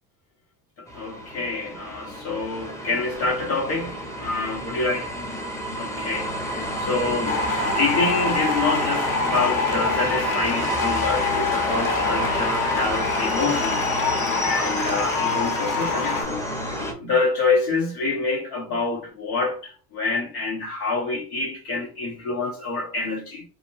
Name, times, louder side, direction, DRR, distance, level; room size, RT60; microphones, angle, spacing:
voice 1, 0.9-5.0 5.8-6.3 6.9-7.4 7.8-13.8 14.4-16.5 17.0-23.4, left 3 dB, 85° left, 1.3 m, -26 dB
sound 1, 0.9-16.9, right 1 dB, 5° left, 0.7 m, -29 dB
sound 2, 7.3-16.2, left 5 dB, 45° left, 1.0 m, -26 dB
2.6 x 2.2 x 2.8 m
hypercardioid pair, 70°, 45 cm